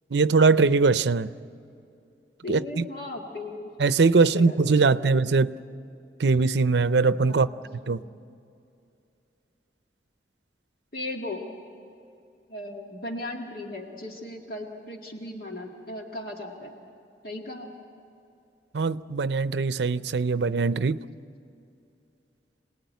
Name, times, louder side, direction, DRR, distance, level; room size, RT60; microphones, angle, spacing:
voice 1, 0.1-1.3 2.5-2.8 3.8-5.5 6.2-7.5 7.9-8.0 18.7-21.0, right 4 dB, 75° right, 0.6 m, -21 dB
voice 2, 2.4-3.7 4.2-5.2 7.3-8.1 10.9-11.4 12.5-16.8 17.2-17.7, left 2 dB, 55° left, 2.0 m, -37 dB
27.5 x 19.0 x 9.3 m
head